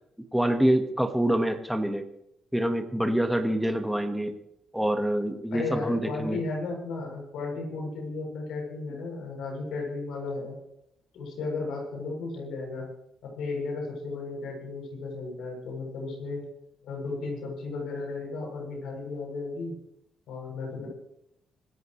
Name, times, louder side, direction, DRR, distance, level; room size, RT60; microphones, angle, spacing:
voice 1, 0.3-2.0 2.5-4.3 4.7-6.4, right 1 dB, 5° right, 5 dB, 1.6 m, -26 dB
voice 2, 5.5-10.6 11.1-12.9 13.2-16.4 16.8-19.8 20.3-20.9, left 3 dB, 80° left, 0 dB, 8.0 m, -34 dB
26.5 x 13.5 x 3.3 m, 0.79 s
cardioid pair, 90°, 0 cm